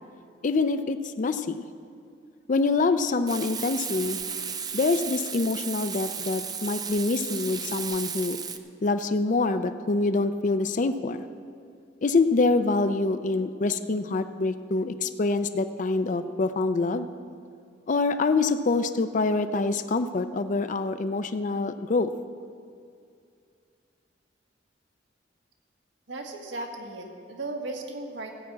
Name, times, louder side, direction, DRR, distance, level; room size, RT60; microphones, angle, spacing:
voice 1, 0.4-1.6 2.5-4.2 4.7-8.4 8.8-11.2 12.0-17.1 17.9-22.1, left 3 dB, 45° left, 10 dB, 0.4 m, -25 dB
Frying (food), 3.3-8.6, right 6 dB, 20° right, 0.5 m, -34 dB
voice 2, 26.1-28.4, right 2 dB, 75° right, 2 dB, 1.5 m, -36 dB
14.0 x 5.9 x 8.4 m, 2.4 s
head